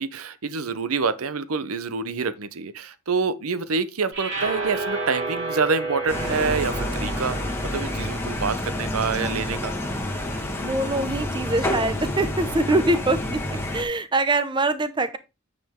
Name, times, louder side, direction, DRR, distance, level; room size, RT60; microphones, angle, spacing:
voice 1, 0.0-7.4 7.6-9.7, right 4 dB, 85° right, 0.8 m, -27 dB
sound 1, 4.1-10.4, right 3 dB, 55° right, 3.3 m, -33 dB
sound 2, 6.1-13.8, left 1 dB, 10° left, 1.4 m, -28 dB
voice 2, 10.6-13.4 13.7-15.2, right 2 dB, 20° right, 0.7 m, -23 dB
9.2 x 5.1 x 3.6 m
head